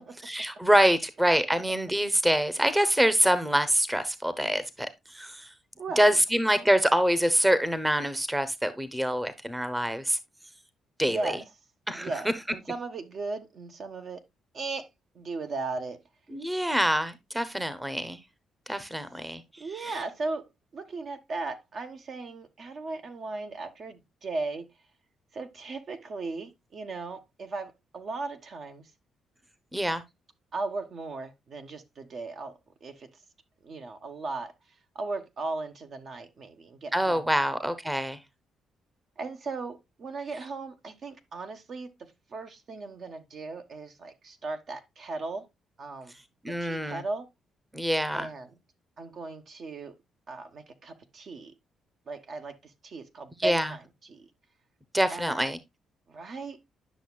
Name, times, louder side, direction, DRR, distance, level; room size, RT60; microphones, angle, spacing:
voice 1, 0.2-5.5 6.0-10.2 11.0-11.3 11.9-12.1 16.3-18.2 18.7-20.0 29.7-30.0 36.9-38.2 46.4-47.0 47.7-48.3 53.4-53.7 54.9-55.6, equal, 10° right, 0.8 m, -25 dB
voice 2, 5.8-6.2 6.6-6.7 11.0-11.4 11.9-14.2 14.5-14.9 15.1-16.0 19.6-20.5 20.7-24.7 25.3-28.9 30.5-32.5 32.8-33.1 33.6-34.5 34.9-37.3 39.2-45.5 45.8-46.2 46.5-47.3 48.1-48.5 49.0-50.0 50.3-51.5 52.1-54.3 55.1-55.4 56.1-56.6, right 3 dB, 55° right, 1.1 m, -37 dB
10.0 x 6.0 x 2.3 m
cardioid pair, 90°, 0 cm